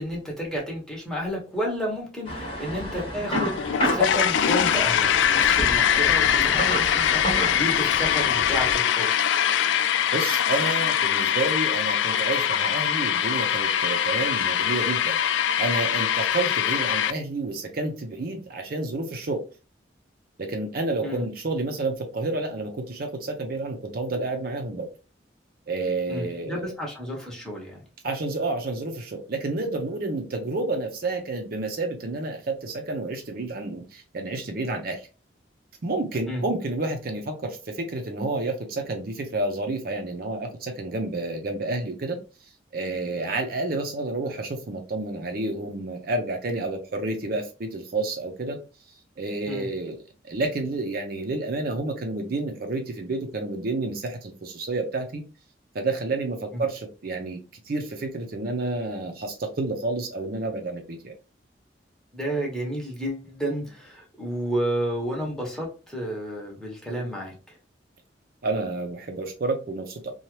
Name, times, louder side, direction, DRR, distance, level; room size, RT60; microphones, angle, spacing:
voice 1, 0.0-9.3 21.0-21.3 26.1-27.8 36.3-36.4 49.5-49.7 56.5-56.6 62.1-67.6, equal, 5° left, 0.9 m, -31 dB
sound 1, 2.2-8.7, equal, 30° left, 1.0 m, -31 dB
sound 2, 3.3-17.1, left 9 dB, 85° left, 0.3 m, -23 dB
voice 2, 10.1-15.2 15.6-19.4 20.4-24.9 25.7-26.7 28.0-35.1 35.8-42.2 42.7-48.6 49.2-50.0 50.2-55.2 55.7-57.4 57.7-61.1 68.4-70.1, right 2 dB, 55° right, 0.5 m, -30 dB
2.8 x 2.3 x 3.1 m
head